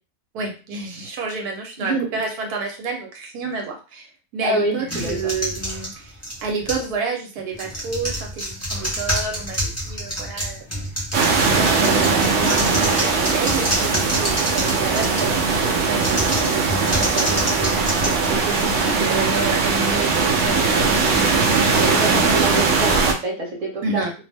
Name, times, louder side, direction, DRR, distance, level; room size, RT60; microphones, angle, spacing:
voice 1, 0.3-6.1 6.4-10.7 11.1-21.8 23.8-24.1, right 4 dB, 80° right, 2 dB, 1.2 m, -30 dB
voice 2, 4.4-5.1 21.7-24.0, right 2 dB, 35° right, -2 dB, 0.9 m, -26 dB
sound 1, 4.9-6.9 7.5-15.5 16.0-18.9, equal, 15° left, 0.5 m, -28 dB
sound 2, 11.1-23.1, right 4 dB, 65° right, 0.7 m, -20 dB
2.8 x 2.0 x 3.3 m, 0.31 s
omnidirectional pair, 1.6 m